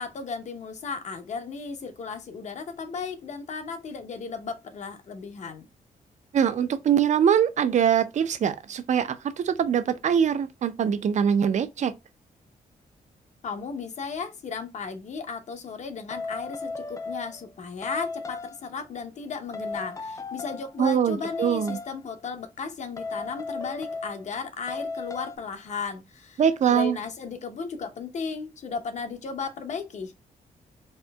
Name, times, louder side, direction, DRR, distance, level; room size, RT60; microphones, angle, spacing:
voice 1, 0.0-5.7 13.4-26.4 26.7-30.1, left 5 dB, 50° left, 0.7 m, -35 dB
voice 2, 6.3-9.1 9.4-11.9 20.8-21.8 26.4-27.0, right 8 dB, 50° right, 0.5 m, -23 dB
sound 1, 16.1-17.5 17.8-18.7 19.5-20.8 21.2-22.0 23.0-24.4 24.7-25.4, left 3 dB, 20° left, 0.3 m, -35 dB
4.3 x 2.6 x 2.2 m
wide cardioid pair, 150°, 15 cm